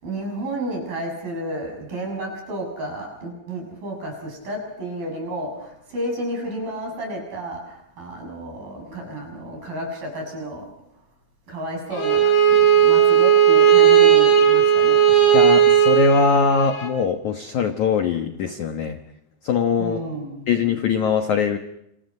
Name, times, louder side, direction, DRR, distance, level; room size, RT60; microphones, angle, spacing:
voice 1, 0.0-10.7 11.5-15.4 19.8-20.6, right 1 dB, 50° right, 2 dB, 8.7 m, -31 dB
Bowed string instrument, 11.9-16.9, right 9 dB, 45° left, 6.1 m, -15 dB
voice 2, 15.3-19.0 19.4-20.0 20.5-21.6, left 6 dB, 65° left, 6 dB, 2.0 m, -21 dB
29.5 x 27.5 x 5.5 m, 0.82 s
omnidirectional pair, 5.2 m